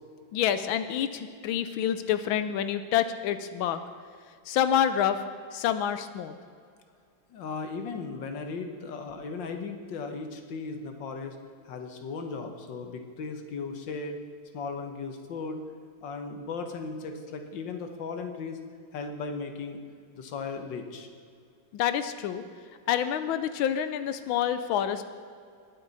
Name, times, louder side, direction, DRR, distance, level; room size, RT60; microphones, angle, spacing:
voice 1, 0.3-3.8 4.5-5.2 5.5-6.3 21.7-22.4 22.9-25.0, left 9 dB, 90° left, 11 dB, 1.5 m, -27 dB
voice 2, 7.3-11.4 11.6-14.2 14.5-15.6 16.0-18.6 18.9-19.8 20.1-21.1, left 4 dB, 65° left, 5 dB, 1.8 m, -36 dB
20.0 x 8.5 x 4.1 m, 2.3 s
omnidirectional pair, 2.2 m